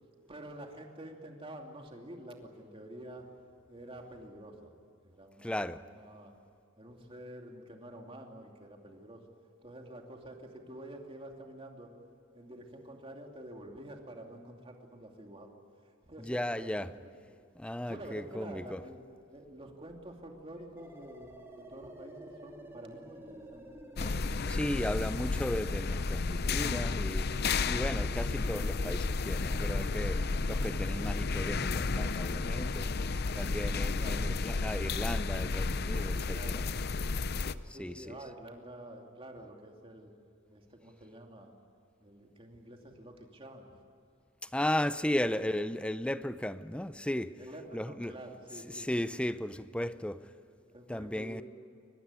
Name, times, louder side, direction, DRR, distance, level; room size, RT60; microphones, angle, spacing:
voice 1, 0.3-3.3 3.7-5.6 5.8-6.3 6.8-9.2 9.6-11.9 12.3-15.5 15.8-17.1 17.9-19.0 19.3-23.7 34.0-34.3 36.1-36.8 37.7-40.1 40.5-41.5 42.0-43.7 44.4-44.6 47.4-48.9 49.8-49.9 50.7-51.4, right 1 dB, 30° right, 2.7 m, -48 dB
voice 2, 5.4-5.8 16.2-16.9 17.6-18.8 24.5-27.4 27.7-32.9 33.3-36.6 37.7-38.1 44.4-47.4 47.7-48.2 48.7-50.2 50.9-51.4, left 1 dB, 5° left, 0.6 m, -35 dB
sound 1, 18.0-28.9, left 1 dB, 35° left, 1.6 m, -56 dB
sound 2, 20.8-35.7, equal, 15° right, 2.8 m, -51 dB
sound 3, 24.0-37.5, left 3 dB, 55° left, 0.6 m, -32 dB
23.0 x 20.5 x 9.8 m
head